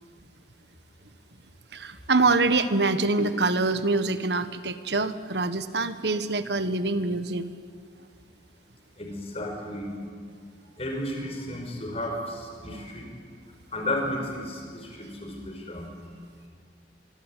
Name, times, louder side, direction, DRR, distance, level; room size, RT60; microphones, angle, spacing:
voice 1, 1.7-7.5, right 3 dB, 70° right, 11 dB, 1.5 m, -25 dB
voice 2, 9.0-10.0 10.8-13.1 13.7-15.9, left 1 dB, 35° left, 2 dB, 5.6 m, -33 dB
26.0 x 22.0 x 9.3 m, 2.1 s
head